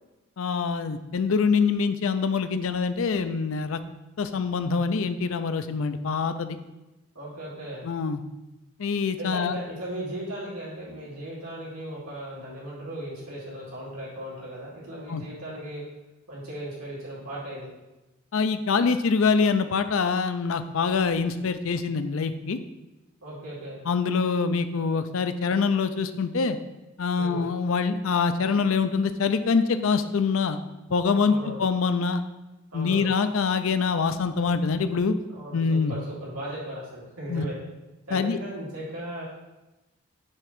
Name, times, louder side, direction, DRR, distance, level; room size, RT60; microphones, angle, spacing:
voice 1, 0.4-3.8 4.2-6.6 7.8-8.2 8.8-9.6 15.1-15.2 18.3-22.6 23.9-26.6 27.0-30.6 30.9-32.2 32.7-35.1 35.5-35.9 37.3-37.4 38.1-38.4, left 5 dB, 65° left, 10 dB, 0.5 m, -25 dB
voice 2, 7.1-7.9 9.2-15.8 16.3-17.7 23.2-23.8 27.2-27.5 31.3-31.6 32.7-33.1 35.3-37.5 38.1-39.2, right 1 dB, 90° right, -6 dB, 2.5 m, -37 dB
6.5 x 3.7 x 6.0 m, 1.0 s
head